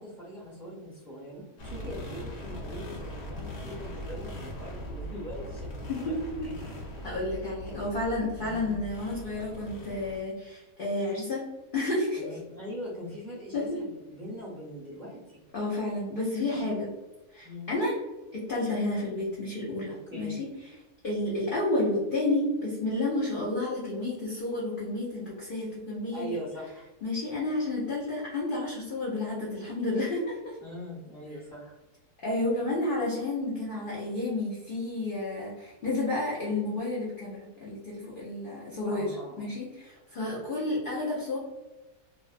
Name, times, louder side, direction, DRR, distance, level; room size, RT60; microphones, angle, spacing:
voice 1, 0.0-6.1 6.4-6.8 7.7-7.8 8.4-8.9 12.2-15.4 17.4-17.7 19.9-20.4 26.1-26.8 30.6-31.8 38.9-39.4, equal, 20° right, -9 dB, 0.6 m, -42 dB
sound 1, 1.6-10.2, equal, 55° left, 0.9 m, -40 dB
voice 2, 5.9-6.5 7.0-11.4 11.7-12.4 13.5-13.8 15.5-16.9 17.3-18.0 18.3-20.5 21.0-26.3 27.0-30.6 32.2-41.4, left 2 dB, 80° left, -6 dB, 0.4 m, -31 dB
2.6 x 2.1 x 2.4 m, 1.1 s
omnidirectional pair, 1.6 m